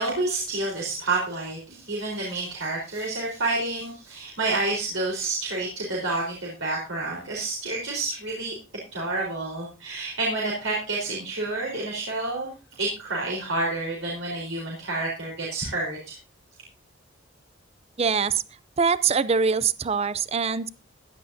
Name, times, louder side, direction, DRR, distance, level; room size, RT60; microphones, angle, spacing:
voice 1, 0.0-8.5 8.9-12.5 12.8-16.2, right 2 dB, 75° right, -3 dB, 4.4 m, -29 dB
voice 2, 18.0-18.4 18.8-20.7, right 5 dB, 30° right, 16 dB, 0.5 m, -23 dB
16.0 x 11.0 x 2.8 m, 0.31 s
head